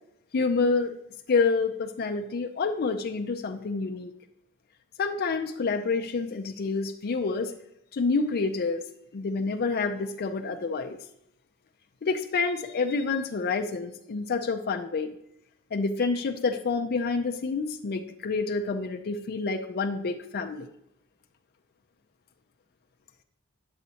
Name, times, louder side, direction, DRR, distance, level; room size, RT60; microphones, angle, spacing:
voice 1, 0.3-0.9 1.3-4.1 5.0-7.5 7.9-8.8 9.1-11.0 12.0-15.1 15.7-20.7, left 4 dB, 45° left, 4 dB, 0.4 m, -28 dB
9.3 x 7.1 x 2.8 m, 0.81 s
head